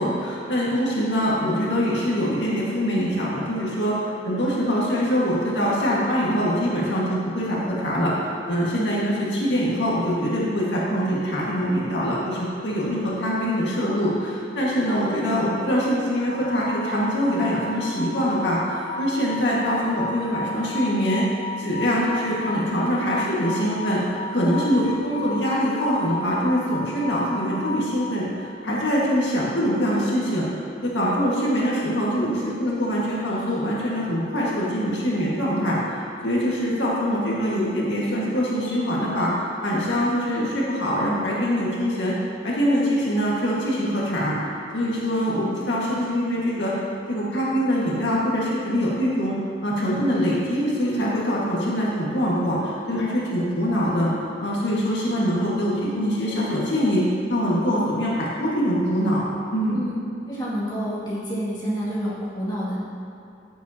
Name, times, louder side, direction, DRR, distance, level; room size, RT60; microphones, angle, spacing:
voice 1, 0.0-21.2 21.6-24.0 24.3-30.5 30.8-39.3 39.6-42.2 42.4-44.4 44.7-46.7 47.1-49.4 49.6-54.1 54.4-57.0 57.3-59.2 59.5-59.8, equal, 70° left, -6 dB, 1.8 m, -23 dB
sound 1, 16.2-28.4, left 1 dB, 85° right, 2.0 m, -34 dB
voice 2, 60.3-62.8, equal, 25° left, -9 dB, 2.3 m, -28 dB
14.5 x 7.4 x 2.9 m, 2.6 s
head